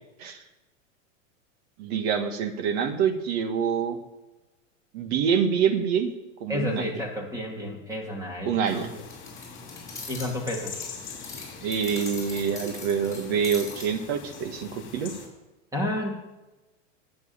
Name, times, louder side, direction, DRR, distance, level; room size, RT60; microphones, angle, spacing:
voice 1, 1.8-4.0 4.9-6.1 6.4-6.8 8.4-8.9 11.6-15.1, right 7 dB, 50° right, 7 dB, 1.7 m, -26 dB
voice 2, 6.5-9.0 10.1-10.7 15.7-16.1, left 1 dB, 10° right, 1 dB, 2.6 m, -31 dB
sound 1, 8.7-15.3, left 5 dB, 30° left, 3.6 m, -43 dB
sound 2, 9.0-10.3 10.7-13.9, left 3 dB, 10° left, 5.9 m, -40 dB
11.0 x 7.6 x 8.8 m, 1.1 s
supercardioid pair, 140°, 39 cm